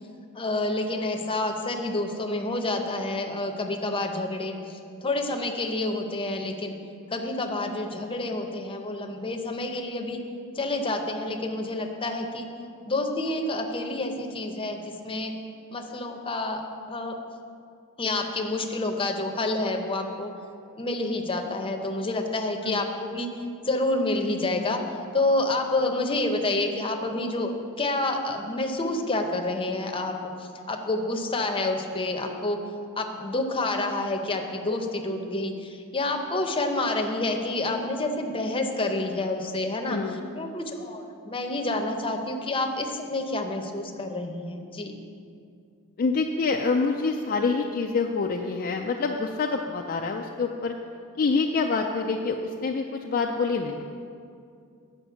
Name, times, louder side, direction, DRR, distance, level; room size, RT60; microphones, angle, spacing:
voice 1, 0.3-6.7 7.1-10.2 10.5-12.5 12.8-15.3 15.7-17.2 18.0-20.3 20.8-24.8 25.1-32.6 33.0-44.9, left 2 dB, 25° left, 4 dB, 0.7 m, -28 dB
voice 2, 39.9-40.2 46.0-50.7 51.2-53.9, left 4 dB, 40° left, 2 dB, 0.4 m, -26 dB
8.6 x 5.2 x 6.9 m, 2.4 s
head